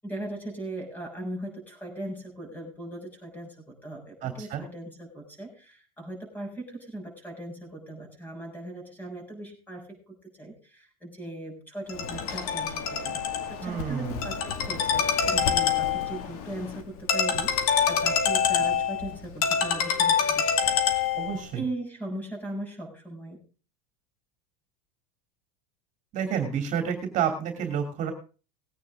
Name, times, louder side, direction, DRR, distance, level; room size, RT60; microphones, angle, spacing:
voice 1, 0.0-9.9 10.3-13.2 13.6-20.8 21.5-23.4, right 1 dB, 10° left, 3 dB, 6.6 m, -39 dB
voice 2, 4.2-4.6 13.6-14.3 21.1-21.6 26.1-28.1, right 8 dB, 40° right, 5 dB, 2.8 m, -29 dB
Ringtone, 11.9-21.5, left 7 dB, 75° left, 2.2 m, -26 dB
19.5 x 9.3 x 3.6 m, 0.35 s
supercardioid pair, 135°, 19 cm